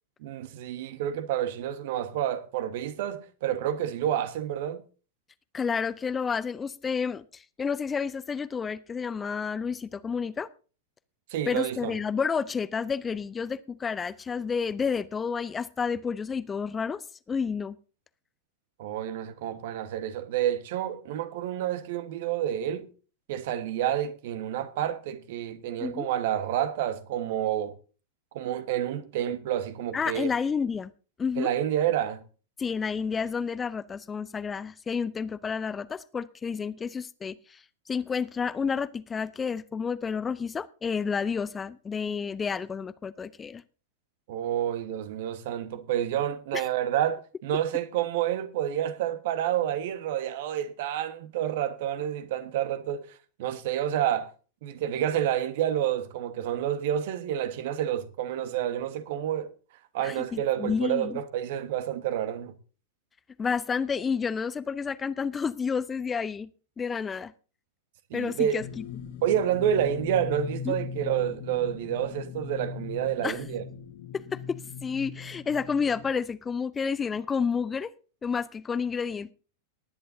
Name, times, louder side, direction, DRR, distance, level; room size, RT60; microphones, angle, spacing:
voice 1, 0.2-4.8 11.3-12.0 18.8-22.9 23.3-27.7 28.3-30.3 31.4-32.2 44.3-54.3 54.6-59.5 59.9-62.5 68.1-68.6 69.2-73.6, right 10 dB, 50° right, 1.3 m, -29 dB
voice 2, 5.5-10.5 11.5-17.8 25.8-26.1 29.9-30.9 31.2-31.5 32.6-43.6 46.5-46.6 60.0-61.2 63.4-66.5 66.8-67.3 68.1-68.8 70.7-70.8 73.2-73.4 74.1-77.9 78.2-79.3, left 6 dB, 15° left, 0.5 m, -30 dB
sound 1, 68.6-76.1, left 6 dB, 50° left, 1.4 m, -39 dB
19.0 x 10.0 x 2.7 m
figure-of-eight pair, 90°, 0 cm